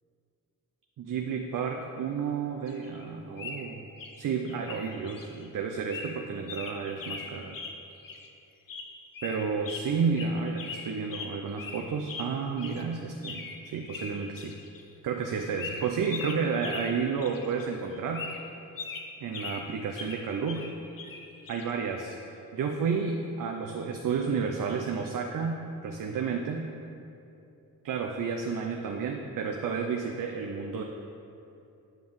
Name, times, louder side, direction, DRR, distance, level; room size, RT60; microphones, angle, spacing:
voice 1, 1.0-3.9 4.2-7.6 9.2-14.6 15.0-18.3 19.2-20.7 21.5-26.7 27.8-30.8, right 5 dB, 55° right, 2 dB, 0.6 m, -31 dB
sound 1, 2.7-4.2 4.5-5.5 5.9-8.3 8.7-12.9 13.2-14.8 15.6-17.7 17.9-21.7, left 4 dB, 60° left, 0.8 m, -41 dB
9.0 x 5.2 x 3.1 m, 2.8 s
supercardioid pair, 45°, 38 cm